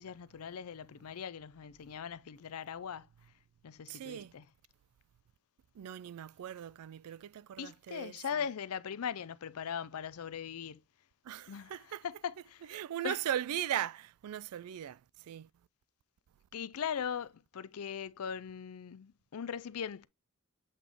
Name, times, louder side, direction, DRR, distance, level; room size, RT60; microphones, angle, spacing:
voice 1, 0.0-3.1 3.6-4.5 7.6-10.8 11.5-11.7 12.0-12.6 13.0-13.2 16.5-20.1, left 7 dB, 75° left, 0.5 m, -40 dB
voice 2, 3.9-4.4 5.8-8.2 11.2-12.0 12.7-15.5, right 10 dB, 85° right, 0.3 m, -38 dB
8.0 x 3.7 x 3.4 m
head